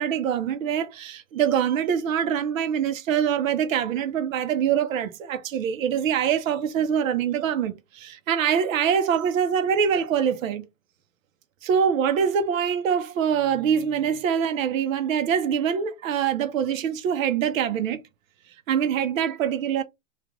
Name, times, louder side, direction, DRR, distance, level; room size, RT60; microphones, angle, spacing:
voice 1, 0.0-10.7 11.6-18.0 18.7-19.8, right 8 dB, 80° right, 0.8 m, -24 dB
2.9 x 2.5 x 3.5 m
hypercardioid pair, 130°, 40 cm